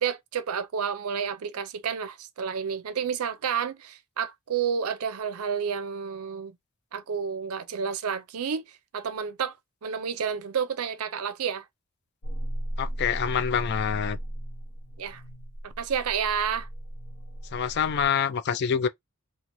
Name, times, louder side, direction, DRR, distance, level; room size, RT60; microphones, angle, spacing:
voice 1, 0.0-6.5 6.9-8.7 8.9-9.6 9.8-11.7 15.0-15.2 15.6-16.7, right 7 dB, 80° right, 0.5 m, -30 dB
sound 1, 12.2-18.1, right 1 dB, 90° left, 0.7 m, -36 dB
voice 2, 12.8-14.2 17.5-18.9, left 7 dB, 50° left, 0.3 m, -26 dB
2.6 x 2.4 x 2.9 m
head